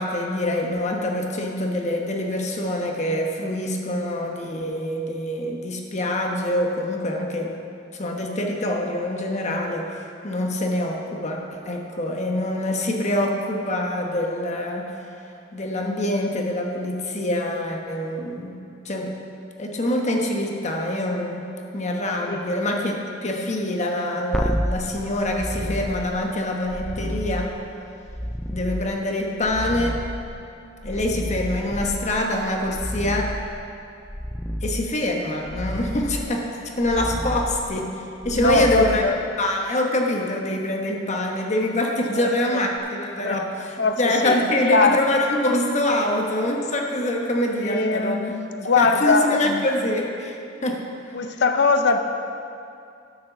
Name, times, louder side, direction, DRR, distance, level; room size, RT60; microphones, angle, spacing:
voice 1, 0.0-7.6 7.9-9.9 10.2-14.9 15.5-19.2 19.6-22.9 23.2-27.5 28.5-30.0 30.8-33.4 34.6-39.0 39.4-48.2 48.8-50.4 50.6-50.8, left 1 dB, 40° left, 1 dB, 1.1 m, -25 dB
sound 1, 24.3-39.6 42.8-42.9, equal, ahead, 0.3 m, -31 dB
voice 2, 38.3-39.2 42.2-42.6 43.2-43.4 43.8-45.0 47.6-49.7 51.1-52.0, left 3 dB, 65° left, 6 dB, 0.6 m, -22 dB
10.0 x 6.5 x 7.0 m, 2.5 s
head